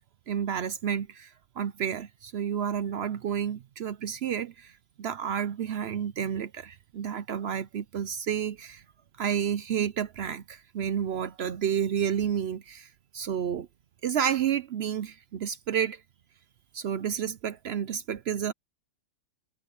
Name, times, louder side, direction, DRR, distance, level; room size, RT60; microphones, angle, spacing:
voice 1, 0.3-8.8 9.2-12.9 13.1-13.7 14.0-16.0 16.7-18.5, right 8 dB, 65° right, 0.6 m, -30 dB
omnidirectional pair, 1.8 m